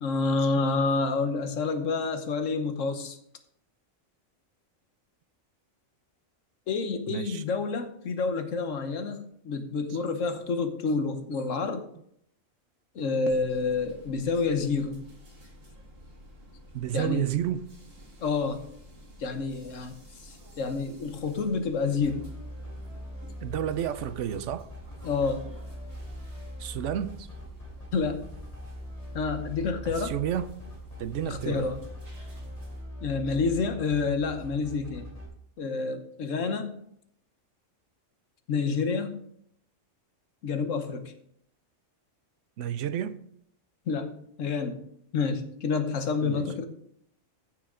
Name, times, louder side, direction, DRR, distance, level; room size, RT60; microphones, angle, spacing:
voice 1, 0.0-3.2 6.7-11.9 12.9-15.0 16.9-17.3 18.2-18.6 19.2-20.0 20.2-22.2 25.0-25.4 27.9-28.2 29.1-30.1 31.2-31.8 33.0-35.1 35.6-36.8 38.5-39.2 40.4-41.0 43.9-44.8 45.1-46.7, left 4 dB, 75° left, 1.4 m, -28 dB
voice 2, 7.1-7.4 16.7-17.7 23.4-24.7 26.6-27.3 29.8-30.6 31.0-31.7 42.6-43.2 46.2-46.5, right 10 dB, 70° right, 0.9 m, -31 dB
sound 1, 13.3-32.8, equal, 45° right, 2.3 m, -50 dB
sound 2, 22.0-35.3, left 1 dB, 30° left, 2.9 m, -41 dB
15.0 x 6.5 x 3.7 m
omnidirectional pair, 1.3 m